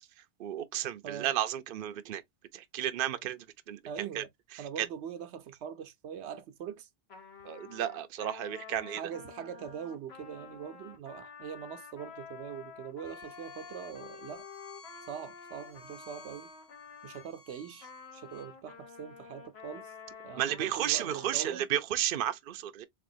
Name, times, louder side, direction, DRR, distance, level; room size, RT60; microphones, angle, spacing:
voice 1, 0.4-2.2 2.5-4.2 4.5-4.9 7.4-9.0 20.4-22.8, right 11 dB, 60° right, 0.7 m, -33 dB
voice 2, 3.9-4.3 4.6-6.9 8.9-14.5 15.1-16.5 17.0-19.9 20.2-21.7, right 8 dB, 80° right, 0.9 m, -42 dB
Trumpet, 7.1-17.3 17.8-21.6, left 6 dB, 70° left, 1.3 m, -49 dB
Bowed string instrument, 13.0-18.5, left 2 dB, 30° left, 1.0 m, -56 dB
3.7 x 3.4 x 2.6 m
omnidirectional pair, 1.1 m